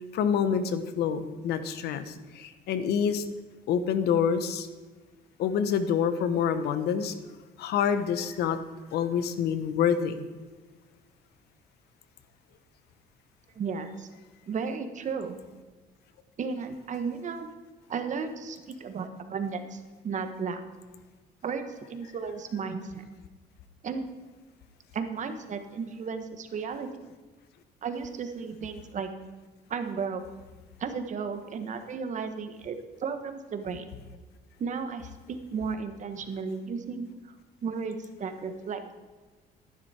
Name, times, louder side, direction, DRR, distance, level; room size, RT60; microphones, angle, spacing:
voice 1, 0.1-3.2 3.7-4.7 5.4-7.1 7.6-8.6 8.9-10.3, left 7 dB, 75° left, 11 dB, 1.1 m, -27 dB
voice 2, 13.5-14.1 14.5-15.4 16.4-17.5 17.9-20.6 21.4-23.0 23.8-24.1 24.9-27.1 27.8-29.1 29.7-30.2 30.8-33.9 34.6-37.3 37.6-39.0, right 5 dB, 45° right, 8 dB, 1.4 m, -34 dB
13.5 x 11.5 x 4.4 m, 1.3 s
cardioid pair, 110°, 17 cm